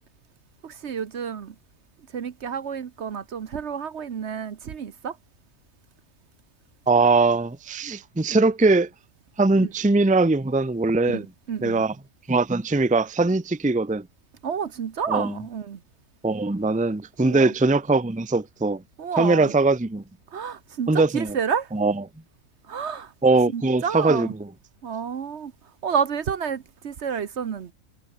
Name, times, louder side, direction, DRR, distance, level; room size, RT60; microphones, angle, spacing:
voice 1, 0.6-1.5 2.1-5.2 9.6-9.7 11.0-11.8 14.4-15.8 17.2-17.5 19.0-19.5 20.3-21.7 22.6-23.1 23.5-24.3 24.8-25.5 25.8-27.7, right 7 dB, 55° right, 1.2 m, -30 dB
voice 2, 6.9-8.9 9.4-11.2 11.6-11.9 12.3-14.1 15.1-15.3 16.2-18.8 19.2-20.0 20.9-21.3 21.7-21.9 23.2-24.5, right 3 dB, 5° right, 0.7 m, -21 dB
omnidirectional pair, 1.4 m